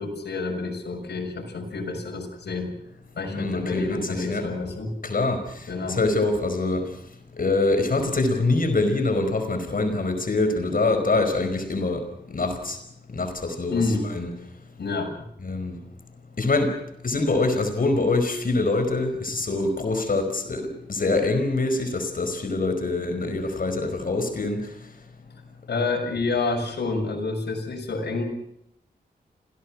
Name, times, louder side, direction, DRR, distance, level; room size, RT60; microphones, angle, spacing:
voice 1, 0.0-2.7 3.1-4.9 5.7-6.0 10.1-10.2 13.7-14.1 14.8-15.3 25.7-28.2, left 3 dB, 85° left, 6.7 m, -28 dB
voice 2, 3.3-4.5 5.0-6.9 7.4-12.8 13.1-14.3 15.4-15.8 16.4-16.8 17.0-24.7, left 2 dB, 55° left, 5.1 m, -25 dB
27.0 x 18.0 x 6.3 m
cardioid pair, 70°, 17 cm